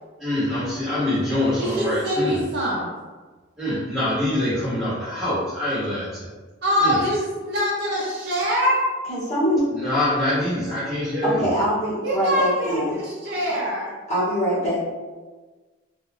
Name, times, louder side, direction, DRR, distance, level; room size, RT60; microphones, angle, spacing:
voice 1, 0.2-2.4 3.6-6.3 6.8-7.0 9.7-11.4, left 1 dB, 5° right, -13 dB, 0.7 m, -24 dB
voice 2, 1.6-2.9 6.6-8.9 12.0-14.0, equal, 50° right, -6 dB, 0.5 m, -24 dB
voice 3, 9.1-9.7 11.2-13.0 13.5-13.6 14.1-14.8, equal, 35° left, -10 dB, 1.0 m, -23 dB
2.3 x 2.2 x 3.2 m, 1.3 s
head